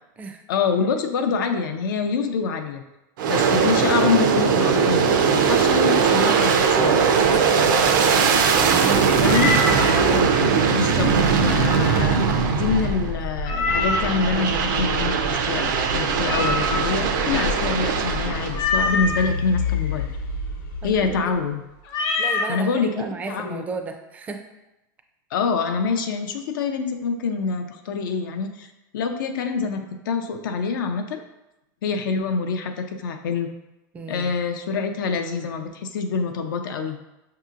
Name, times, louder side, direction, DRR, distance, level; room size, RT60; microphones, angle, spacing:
voice 1, 0.5-2.8 3.3-7.1 9.2-9.5 10.7-20.1 20.8-21.6 22.5-22.9 23.3-23.6 25.3-28.7 28.9-31.2 31.8-33.5 34.1-37.0, left 5 dB, 85° left, 5 dB, 0.5 m, -26 dB
Aircraft, 3.2-13.2 13.7-18.6, right 6 dB, 75° right, 0.5 m, -20 dB
sound 1, 6.0-21.8, left 3 dB, 70° left, 0.8 m, -32 dB
voice 2, 7.1-8.1 8.5-9.3 9.9-10.3 13.2-13.3 20.8-21.2 22.2-24.4 33.9-34.3, right 4 dB, 15° right, 4 dB, 0.3 m, -33 dB
Meow, 9.2-10.0 13.4-14.2 16.2-17.0 18.5-19.3 21.9-22.5, left 3 dB, 40° left, 0.6 m, -24 dB
5.6 x 2.8 x 2.4 m, 0.95 s
supercardioid pair, 150°, 11 cm